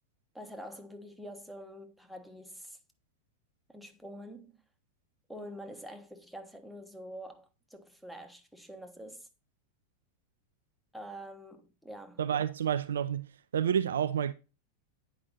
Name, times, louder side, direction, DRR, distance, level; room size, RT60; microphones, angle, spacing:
voice 1, 0.3-2.8 3.7-4.6 5.3-9.3 10.9-12.2, equal, ahead, 1.2 m, -46 dB
voice 2, 12.2-13.3 13.5-14.3, right 9 dB, 65° right, 0.4 m, -29 dB
9.2 x 4.9 x 4.1 m
figure-of-eight pair, 90°, 0 cm